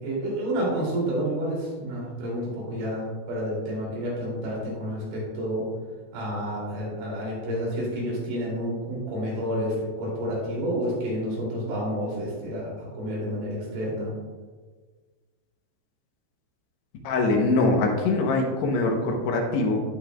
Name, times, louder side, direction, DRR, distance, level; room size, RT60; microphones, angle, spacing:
voice 1, 0.0-5.7 6.1-14.1, equal, 85° right, -5 dB, 5.3 m, -29 dB
voice 2, 17.0-19.8, left 2 dB, 75° left, 1 dB, 2.9 m, -23 dB
16.5 x 5.4 x 2.3 m, 1.4 s
omnidirectional pair, 5.2 m